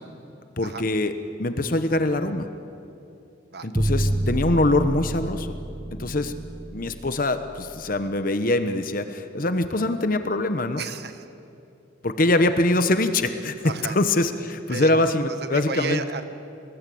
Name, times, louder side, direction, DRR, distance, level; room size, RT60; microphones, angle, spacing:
voice 1, 0.6-1.1 1.4-2.5 3.6-5.6 6.0-6.3 6.7-10.8 12.0-16.0, left 2 dB, 45° left, 9 dB, 1.1 m, -23 dB
sound 1, 3.7-7.8, right 1 dB, 15° right, 1.0 m, -28 dB
voice 2, 10.8-11.3 13.6-14.0 14.7-14.9 15.3-16.2, right 5 dB, 55° right, 9 dB, 1.3 m, -32 dB
29.0 x 20.5 x 8.6 m, 2.7 s
head